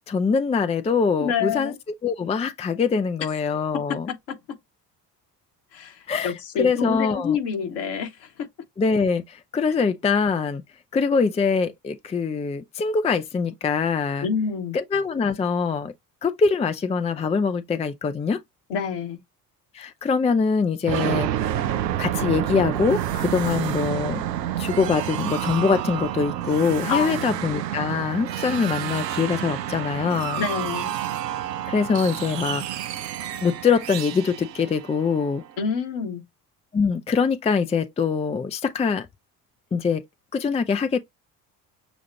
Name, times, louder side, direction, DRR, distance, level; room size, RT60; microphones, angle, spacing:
voice 1, 0.0-1.7 2.0-4.1 6.1-7.4 8.8-10.6 10.9-14.3 14.7-15.9 16.2-18.4 19.7-21.3 21.5-21.7 22.0-24.2 24.6-30.4 31.7-32.6 33.4-35.4 36.7-39.1 39.7-40.0 40.3-41.0, left 5 dB, 15° left, 0.5 m, -23 dB
voice 2, 1.2-1.8 4.3-4.4 5.7-8.5 14.2-14.8 18.7-19.2 26.9-27.4 30.4-31.0 35.6-36.2, left 6 dB, 60° left, 1.7 m, -27 dB
sound 1, 20.9-35.5, right 11 dB, 85° right, 0.6 m, -29 dB
7.0 x 2.4 x 2.8 m
figure-of-eight pair, 55°, 48 cm